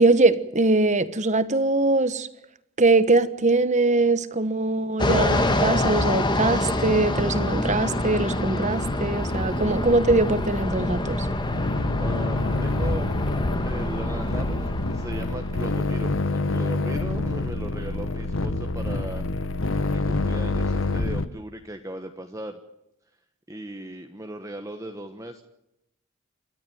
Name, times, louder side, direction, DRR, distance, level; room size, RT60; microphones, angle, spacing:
voice 1, 0.0-2.3 2.8-11.3, right 2 dB, 35° right, 13 dB, 1.2 m, -22 dB
Fixed-wing aircraft airplane, 5.0-15.8, left 1 dB, 20° left, 1.8 m, -26 dB
sound 1, 7.5-21.3, left 2 dB, 60° left, 1.1 m, -28 dB
voice 2, 12.0-13.2 13.6-19.3 19.9-22.6 23.5-25.4, right 1 dB, 15° right, 5 dB, 1.3 m, -37 dB
28.0 x 13.5 x 9.3 m, 0.83 s
head